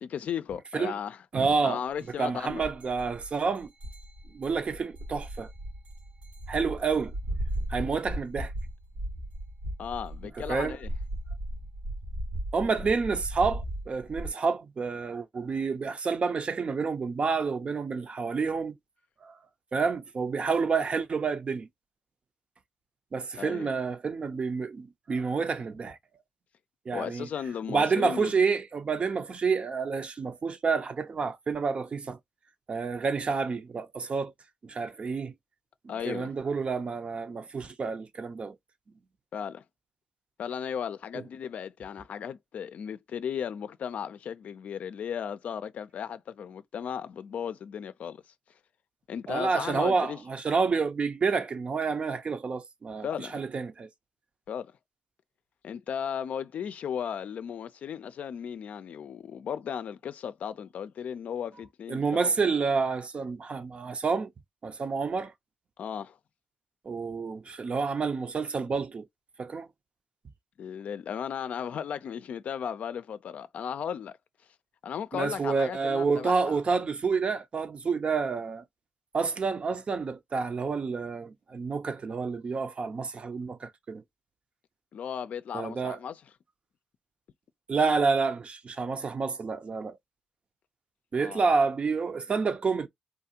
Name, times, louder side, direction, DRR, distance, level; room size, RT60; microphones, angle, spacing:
voice 1, 0.0-1.2 1.6-2.7 9.8-10.9 23.4-23.7 26.9-28.3 35.9-36.3 39.3-39.6 40.4-48.2 49.1-50.2 53.0-53.3 54.5-54.7 55.6-62.3 65.8-66.2 70.6-74.2 74.8-76.6 84.9-86.2 91.2-91.4, left 8 dB, 70° left, 0.4 m, -35 dB
voice 2, 1.3-1.8 2.2-3.7 4.3-5.5 6.5-7.1 7.7-8.5 10.4-10.8 12.5-18.7 19.2-19.4 19.7-21.7 23.1-26.0 26.9-27.3 27.7-32.2 32.7-34.3 34.6-35.3 35.8-38.5 41.1-41.2 49.3-53.9 61.9-64.3 64.6-65.3 66.8-69.1 69.4-69.7 75.1-78.6 79.1-84.0 85.5-86.0 87.7-90.0 91.1-92.9, right 4 dB, 50° right, 0.6 m, -29 dB
sound 1, 2.0-2.1 2.5-14.3, right 1 dB, 85° right, 2.5 m, -37 dB
3.7 x 2.4 x 2.8 m
supercardioid pair, 60°, 3 cm